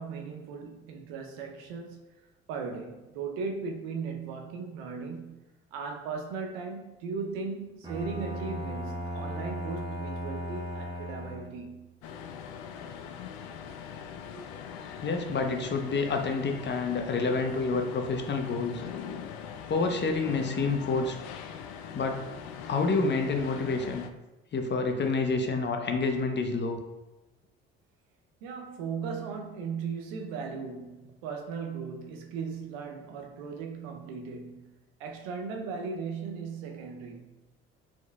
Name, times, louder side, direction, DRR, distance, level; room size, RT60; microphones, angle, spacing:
voice 1, 0.0-11.9 14.3-14.5 28.4-34.7 35.0-37.4, right 5 dB, 80° right, 0.7 m, -37 dB
Bowed string instrument, 7.8-11.8, equal, 15° right, 1.0 m, -36 dB
sound 1, 12.0-24.1, left 7 dB, 75° left, 0.4 m, -42 dB
voice 2, 15.0-18.8 19.7-21.2 21.9-22.2 22.7-24.0 24.5-26.8, left 4 dB, 35° left, 0.8 m, -28 dB
4.8 x 4.3 x 2.3 m
hypercardioid pair, 60°, 30 cm